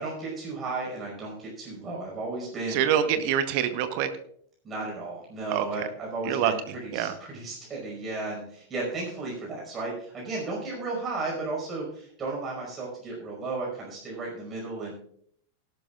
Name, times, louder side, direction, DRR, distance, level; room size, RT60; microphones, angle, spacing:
voice 1, 0.0-2.8 3.1-3.2 4.6-14.9, right 3 dB, 20° right, -3 dB, 5.3 m, -34 dB
voice 2, 2.7-4.1 5.5-5.7 6.3-6.5 6.9-7.1, right 9 dB, 45° right, 10 dB, 1.0 m, -25 dB
18.0 x 11.5 x 2.5 m, 0.62 s
figure-of-eight pair, 90°, 0 cm